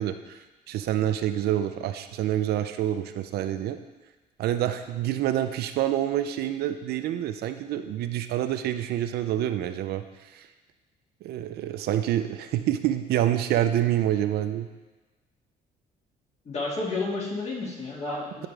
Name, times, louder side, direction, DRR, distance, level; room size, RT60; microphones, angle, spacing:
voice 1, 0.0-3.8 4.4-10.5 11.2-14.7, right 12 dB, 70° right, 9 dB, 0.5 m, -27 dB
voice 2, 16.4-18.5, left 3 dB, 40° left, -4 dB, 2.3 m, -31 dB
13.0 x 5.0 x 3.4 m, 1.2 s
cardioid pair, 110°, 17 cm